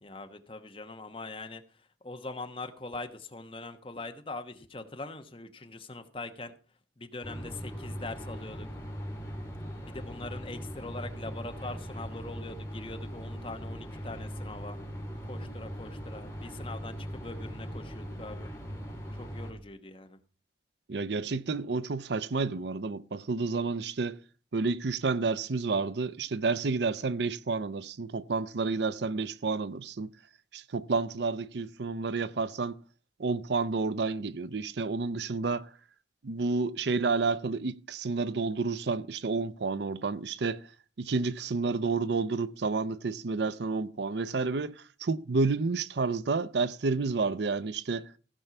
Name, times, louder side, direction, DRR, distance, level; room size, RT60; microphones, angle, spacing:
voice 1, 0.0-1.6 2.0-6.5 7.0-8.7 9.7-14.8 15.3-18.5 19.1-20.2, left 2 dB, 30° left, 1.1 m, -42 dB
sound 1, 7.2-19.5, equal, 15° left, 2.4 m, -40 dB
voice 2, 20.9-24.2 24.5-30.1 30.5-32.8 33.2-35.7 36.2-40.7 41.0-48.1, right 4 dB, 70° right, 0.6 m, -30 dB
15.5 x 5.5 x 5.9 m
head